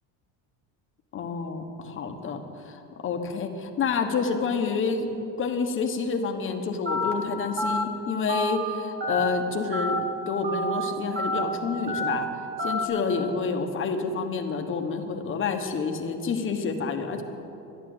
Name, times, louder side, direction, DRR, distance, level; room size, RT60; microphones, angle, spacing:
voice 1, 1.1-5.1 5.4-10.0 10.3-12.3 12.6-17.2, left 5 dB, 30° left, 5 dB, 1.2 m, -28 dB
Telephone, 6.9-7.1 7.6-7.8 8.3-8.6 9.0-9.3 9.7-10.0 10.4-10.7 11.2-11.4 11.9-12.1 12.6-12.9, left 1 dB, 25° right, 1.8 m, -27 dB
12.5 x 11.0 x 7.9 m, 2.8 s
cardioid pair, 150°, 42 cm